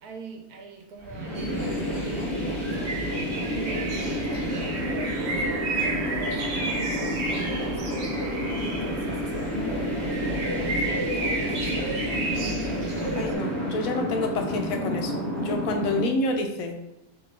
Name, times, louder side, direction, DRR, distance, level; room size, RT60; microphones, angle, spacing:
voice 1, 0.0-12.0 12.3-12.8, right 3 dB, 85° right, 2 dB, 1.3 m, -42 dB
sound 1, 1.0-16.0, equal, 20° right, 1.3 m, -30 dB
sound 2, 1.3-13.3, right 2 dB, 55° right, 0.9 m, -32 dB
voice 2, 13.1-16.8, left 2 dB, 70° left, 4 dB, 1.0 m, -28 dB
4.4 x 2.9 x 3.2 m, 0.91 s
omnidirectional pair, 1.6 m